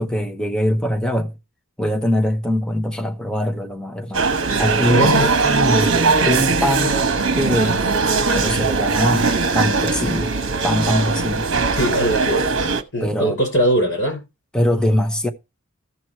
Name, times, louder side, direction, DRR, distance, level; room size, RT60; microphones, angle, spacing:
voice 1, 0.0-1.3 1.8-4.3 4.6-6.0 6.2-7.1 7.4-7.8 8.4-10.3 10.6-11.5 12.0-12.1 13.0-13.4 14.5-15.3, left 1 dB, 5° left, 0.9 m, -22 dB
sound 1, 4.1-12.8, right 4 dB, 65° right, 1.2 m, -19 dB
voice 2, 4.9-5.3 11.8-12.5 12.9-14.2, equal, 60° left, 5.9 m, -20 dB
14.0 x 6.2 x 4.6 m
head